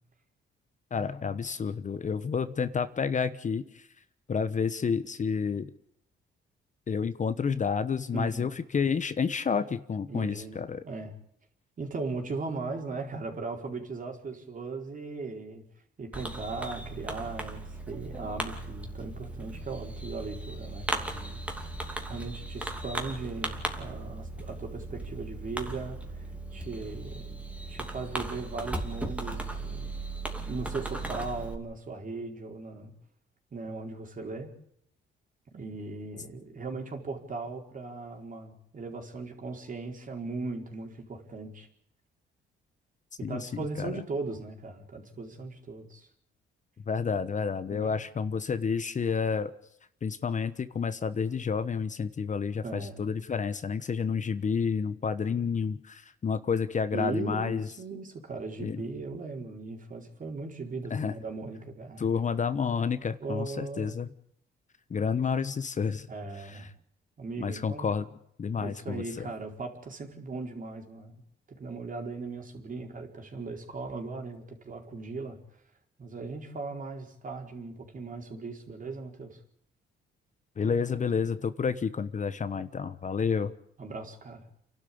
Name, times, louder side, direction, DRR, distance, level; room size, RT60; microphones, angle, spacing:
voice 1, 0.9-3.8 4.3-5.7 6.9-10.8 43.2-44.0 46.9-49.5 50.0-57.7 58.6-58.8 60.9-61.1 62.0-64.1 64.9-66.1 66.5-66.7 67.4-68.1 68.4-69.3 80.6-83.5, left 6 dB, 40° left, 12 dB, 1.1 m, -30 dB
voice 2, 8.1-8.5 10.1-11.1 11.8-15.6 16.0-21.4 22.0-27.4 27.7-30.0 30.5-32.9 33.5-34.5 35.5-41.7 43.2-46.1 47.7-48.0 52.6-53.1 56.9-62.0 63.2-64.0 66.1-66.7 67.2-67.9 68.6-71.2 71.6-75.4 76.0-79.4 83.8-84.5, right 3 dB, 40° right, 2 dB, 4.5 m, -38 dB
Fireworks, 16.1-31.6, right 2 dB, 5° right, 2.8 m, -37 dB
29.0 x 12.0 x 8.7 m, 0.72 s
cardioid pair, 90°, 20 cm